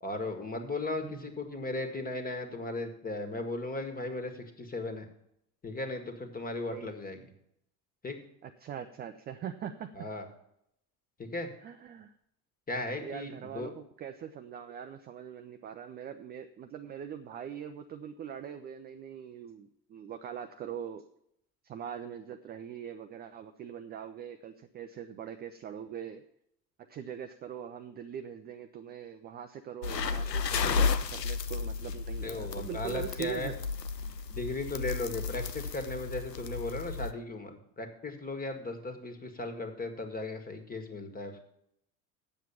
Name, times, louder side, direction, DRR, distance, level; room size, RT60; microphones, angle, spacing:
voice 1, 0.0-5.1 5.6-7.2 8.0-8.2 10.0-10.2 11.2-11.5 12.7-13.7 32.2-33.5 34.3-41.4, left 2 dB, 20° left, 6 dB, 1.7 m, -36 dB
voice 2, 1.0-1.3 6.7-6.9 8.4-9.9 11.6-12.1 13.0-21.0 21.6-26.2 26.9-33.6, right 8 dB, 20° right, 7 dB, 0.4 m, -42 dB
sound 1, 29.8-37.1, left 5 dB, 90° left, 0.6 m, -33 dB
8.9 x 7.5 x 6.9 m, 0.76 s
figure-of-eight pair, 65°, 48 cm